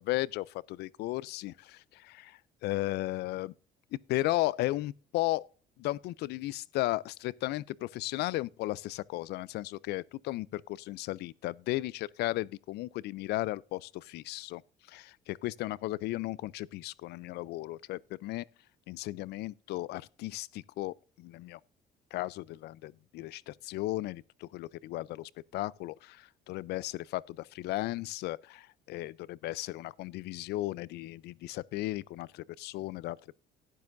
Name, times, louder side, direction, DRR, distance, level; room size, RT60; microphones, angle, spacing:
voice 1, 0.0-3.5 4.1-5.5 5.8-14.6 14.9-18.5 18.9-21.6 22.1-33.4, left 17 dB, 75° left, 0.4 m, -35 dB
12.0 x 9.6 x 2.5 m
cardioid pair, 110°, 17 cm